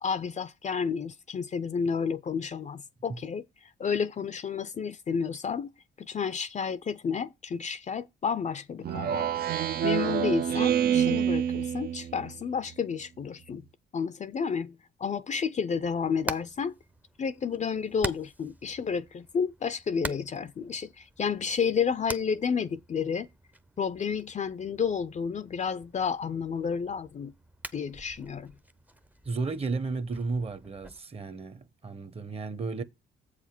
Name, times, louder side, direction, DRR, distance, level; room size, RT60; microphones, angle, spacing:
voice 1, 0.0-5.7 6.0-9.3 9.8-13.6 13.9-16.7 17.2-23.3 23.8-27.3 27.7-28.5, left 6 dB, 35° left, 0.5 m, -31 dB
Speech synthesizer, 8.8-12.4, right 9 dB, 50° right, 0.5 m, -27 dB
Hammer, 15.8-31.0, right 1 dB, 10° right, 0.6 m, -44 dB
voice 2, 29.2-32.8, right 4 dB, 30° right, 0.9 m, -33 dB
7.6 x 4.9 x 5.9 m
cardioid pair, 90°, 20 cm